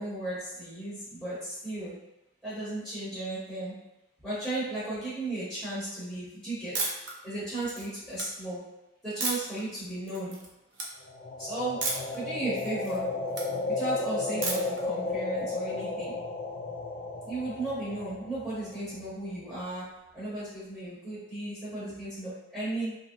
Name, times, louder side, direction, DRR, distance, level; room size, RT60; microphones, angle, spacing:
voice 1, 0.0-1.9 2.4-3.7 4.2-6.8 7.2-8.6 9.0-10.4 11.4-11.8 12.1-13.1 13.7-16.1 17.2-19.9 20.1-23.0, right 2 dB, 5° right, -13 dB, 1.0 m, -35 dB
sound 1, 6.7-7.1 7.6-8.2 9.2-9.6 10.1-10.5 10.7-10.9 11.8-12.2 12.5-13.5 14.4-14.8, right 3 dB, 60° right, 0.6 m, -32 dB
sound 2, 11.1-19.1, left 3 dB, 40° left, 0.3 m, -34 dB
2.6 x 2.1 x 2.6 m, 0.94 s
head